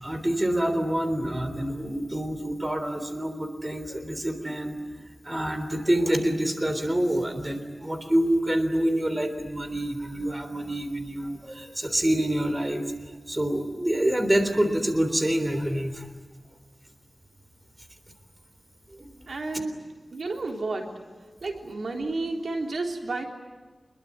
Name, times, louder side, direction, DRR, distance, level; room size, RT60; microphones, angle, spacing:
voice 1, 0.0-4.8 5.2-12.9 13.3-16.1 18.9-19.1, right 1 dB, 20° right, 8 dB, 3.6 m, -26 dB
voice 2, 19.3-19.8 20.1-21.0 21.4-23.3, right 3 dB, 80° right, 2 dB, 3.6 m, -31 dB
27.0 x 22.0 x 9.6 m, 1.4 s
wide cardioid pair, 85°, 0 cm